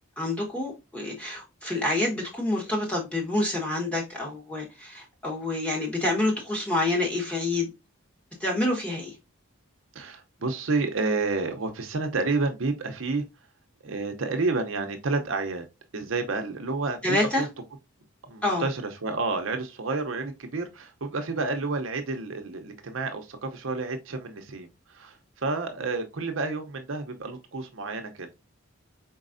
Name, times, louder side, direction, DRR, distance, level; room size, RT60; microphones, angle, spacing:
voice 1, 0.2-7.7 8.4-9.1 17.0-17.4 18.4-18.6, left 2 dB, 5° left, 1.2 m, -27 dB
voice 2, 9.9-13.2 13.8-15.6 15.9-17.5 18.2-28.3, right 3 dB, 65° right, 0.7 m, -30 dB
4.5 x 4.0 x 2.6 m
head